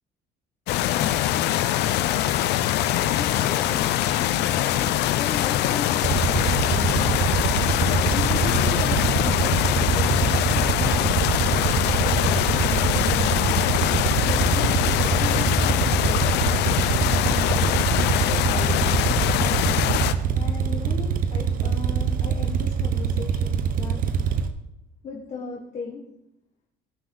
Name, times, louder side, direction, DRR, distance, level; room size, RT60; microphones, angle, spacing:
sound 1, 0.7-20.1, left 12 dB, 80° left, 0.6 m, -23 dB
voice 1, 2.7-19.1 20.3-24.0 25.0-26.0, left 5 dB, 45° left, -2 dB, 1.5 m, -37 dB
sound 2, 6.0-24.5, right 7 dB, 55° right, 0.9 m, -24 dB
17.5 x 6.1 x 4.0 m, 0.84 s
cardioid pair, 110°, 17 cm